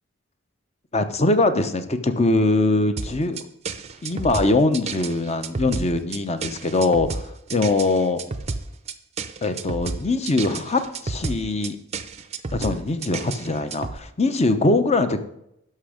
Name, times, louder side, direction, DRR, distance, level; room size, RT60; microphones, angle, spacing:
voice 1, 0.9-3.4 4.0-7.1 7.5-8.2 9.4-11.8 12.5-15.2, left 2 dB, 30° left, 9 dB, 0.8 m, -22 dB
sound 1, 3.0-14.0, right 4 dB, 30° right, 0.6 m, -31 dB
11.5 x 6.2 x 5.0 m, 0.77 s
head